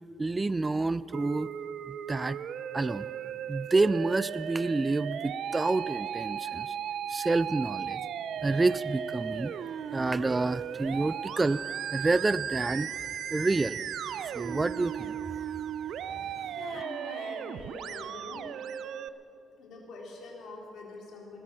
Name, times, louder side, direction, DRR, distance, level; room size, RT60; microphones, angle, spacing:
voice 1, 0.2-1.5 1.9-2.4 2.7-3.1 3.5-6.7 7.1-8.0 8.4-9.6 9.9-11.6 11.9-12.9 13.3-13.8 14.3-15.5, right 3 dB, 20° right, 17 dB, 0.3 m, -28 dB
Musical instrument, 1.1-19.1, right 9 dB, 70° right, 0.5 m, -36 dB
voice 2, 16.6-18.5 19.6-21.4, left 2 dB, 70° left, -1 dB, 3.7 m, -44 dB
18.5 x 12.0 x 6.3 m, 2.7 s
cardioid pair, 90°, 0 cm